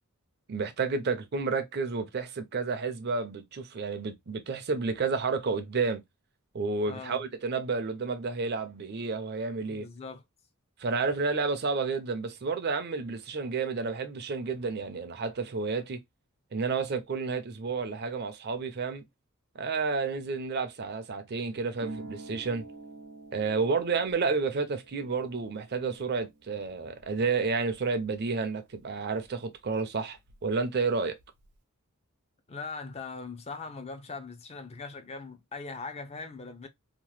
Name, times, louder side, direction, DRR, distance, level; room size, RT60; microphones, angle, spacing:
voice 1, 0.5-6.0 6.5-9.9 10.8-16.0 16.5-19.0 19.6-22.6 23.3-31.2, right 4 dB, 50° right, 0.5 m, -31 dB
voice 2, 6.8-7.2 9.7-10.2 32.5-36.7, left 4 dB, 30° left, 0.4 m, -40 dB
Harp, 21.8-29.3 29.5-30.6 30.9-31.6, right 3 dB, 85° right, 0.7 m, -48 dB
2.9 x 2.1 x 3.1 m
head